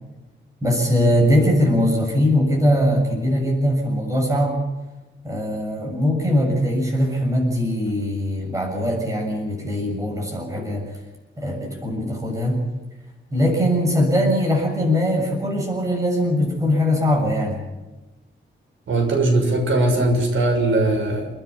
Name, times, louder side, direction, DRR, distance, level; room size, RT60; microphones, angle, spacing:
voice 1, 0.6-4.6 5.2-10.8 11.4-12.6 13.3-17.6, equal, 15° right, 0 dB, 6.9 m, -21 dB
voice 2, 18.9-21.3, right 2 dB, 85° right, 2 dB, 6.3 m, -19 dB
29.5 x 10.5 x 9.9 m, 1.1 s
wide cardioid pair, 170°, 20 cm